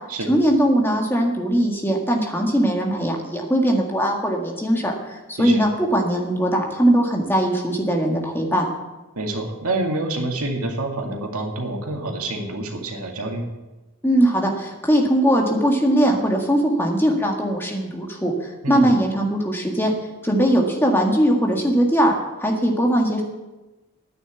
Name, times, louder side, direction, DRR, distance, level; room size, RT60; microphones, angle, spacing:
voice 1, 0.3-8.7 14.0-19.9 20.2-23.2, right 1 dB, 10° left, 0 dB, 1.8 m, -20 dB
voice 2, 9.2-13.5 18.6-18.8, right 2 dB, 85° right, 2 dB, 2.2 m, -27 dB
10.5 x 9.5 x 8.2 m, 1.1 s
head